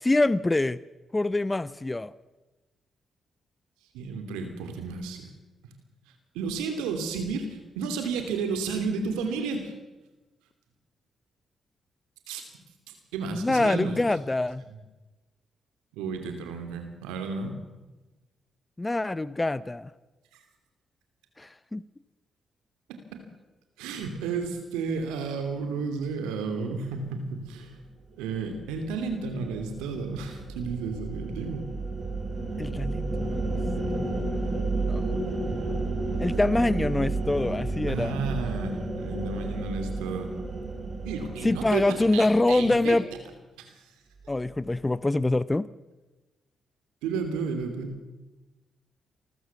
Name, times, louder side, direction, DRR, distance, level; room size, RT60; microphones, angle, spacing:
voice 1, 0.0-0.8 1.1-2.1 13.3-14.6 18.8-19.9 21.4-21.8 32.6-33.4 34.0-34.2 34.8-35.1 35.5-35.6 36.2-38.2 41.4-43.1 44.3-45.7, left 2 dB, 20° left, 18 dB, 0.7 m, -25 dB
voice 2, 3.9-5.3 6.3-9.7 12.3-12.4 12.9-14.0 14.7-14.8 15.9-17.6 22.9-23.3 23.8-27.8 28.2-31.7 37.9-40.3 41.0-43.0 43.6-43.7 47.0-47.9, right 4 dB, 85° right, 6 dB, 2.8 m, -32 dB
sound 1, 28.5-43.0, right 2 dB, 45° right, 6.2 m, -32 dB
27.5 x 14.0 x 7.1 m, 1.1 s
hypercardioid pair, 50°, 0 cm